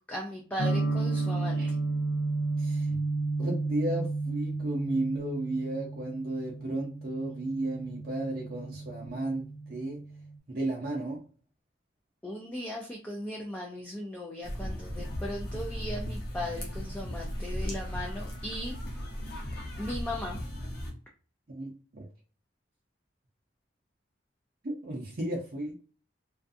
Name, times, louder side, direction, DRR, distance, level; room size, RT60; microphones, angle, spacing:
voice 1, 0.1-1.8 12.2-18.7 19.8-20.4, equal, 10° left, -2 dB, 0.3 m, -37 dB
sound 1, 0.6-10.4, right 3 dB, 85° left, 0.6 m, -32 dB
voice 2, 2.6-3.0 3.4-10.0 10.5-11.2 21.5-22.1 24.6-25.7, right 1 dB, 50° right, -2 dB, 0.6 m, -34 dB
sound 2, 14.4-20.9, equal, 50° left, 0.8 m, -36 dB
2.5 x 2.4 x 2.5 m, 0.38 s
head